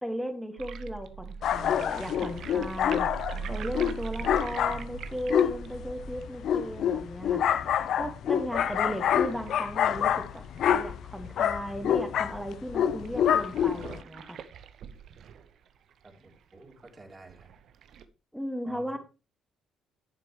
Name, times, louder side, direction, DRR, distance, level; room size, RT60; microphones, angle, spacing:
voice 1, 0.0-3.1 3.5-7.4 7.9-14.4 18.3-19.0, equal, ahead, 5 dB, 2.1 m, -36 dB
sound 1, 0.6-11.6 12.0-12.1 12.3-12.4 13.0-18.0, right 6 dB, 50° right, 0.9 m, -42 dB
sound 2, 1.4-14.0, left 9 dB, 55° left, 0.6 m, -27 dB
voice 2, 16.0-17.5 18.6-19.0, right 2 dB, 25° right, 2 dB, 3.5 m, -50 dB
10.5 x 9.8 x 3.3 m, 0.31 s
figure-of-eight pair, 45°, 0 cm